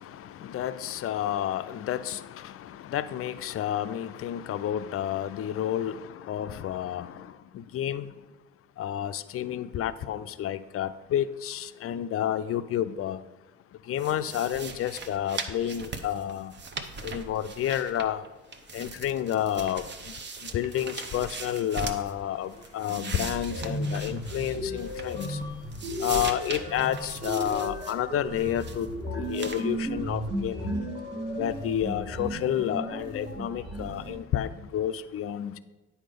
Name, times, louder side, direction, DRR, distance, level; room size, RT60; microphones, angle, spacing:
voice 1, 0.0-8.1 8.8-13.2 13.8-16.5 17.0-18.2 18.7-20.1 20.4-25.4 26.0-30.8 31.4-35.6, left 11 dB, 45° left, 0.5 m, -30 dB
sound 1, 14.0-18.3 18.5-22.1 22.5-25.5 25.7-28.0 28.4-28.9 29.3-29.6, right 4 dB, 35° right, 0.8 m, -40 dB
sound 2, 22.5-22.6 22.9-34.1, equal, 80° right, 2.9 m, -34 dB
9.1 x 4.3 x 5.2 m
hypercardioid pair, 60°, 31 cm